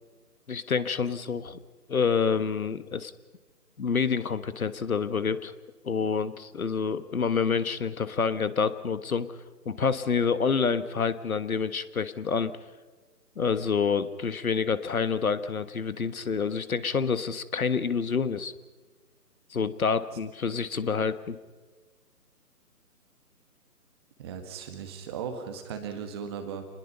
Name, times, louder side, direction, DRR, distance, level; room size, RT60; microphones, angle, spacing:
voice 1, 0.5-1.6 1.9-3.1 3.8-5.5 5.8-9.4 9.6-12.5 13.4-18.5 19.5-21.4, left 5 dB, 60° left, 13 dB, 1.5 m, -27 dB
voice 2, 24.2-26.6, right 7 dB, 15° right, 6 dB, 1.7 m, -37 dB
27.5 x 20.5 x 5.5 m, 1.3 s
figure-of-eight pair, 155°, 48 cm